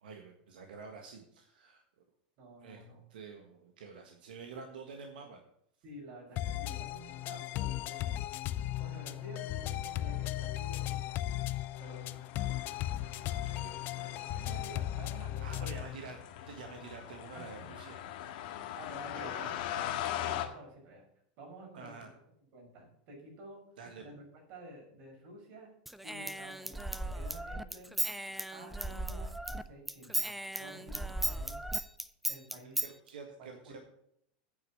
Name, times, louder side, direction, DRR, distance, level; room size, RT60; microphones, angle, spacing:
voice 1, 0.0-1.8 2.6-2.8 3.1-5.4 13.2-14.6 15.4-16.2 16.5-18.4 19.1-19.6 21.7-22.1 23.8-24.1 32.8-33.8, right 5 dB, 90° right, 4 dB, 1.5 m, -48 dB
voice 2, 2.4-3.0 5.8-8.2 8.8-11.2 11.8-12.5 14.4-15.9 17.3-17.4 18.8-21.0 21.4-22.1 22.5-23.6 24.0-24.2 24.5-25.7 26.0-27.9 28.5-30.2 30.5-31.7 32.3-32.8 33.4-33.8, right 1 dB, 55° right, 0 dB, 5.7 m, -51 dB
sound 1, 6.4-16.0, left 14 dB, 45° left, 0.5 m, -36 dB
sound 2, 11.8-20.5, left 11 dB, 65° left, 1.7 m, -41 dB
Human voice / Scissors, 25.9-29.6 29.9-32.9, right 1 dB, ahead, 0.5 m, -36 dB
8.9 x 6.7 x 8.5 m, 0.73 s
supercardioid pair, 125°, 5 cm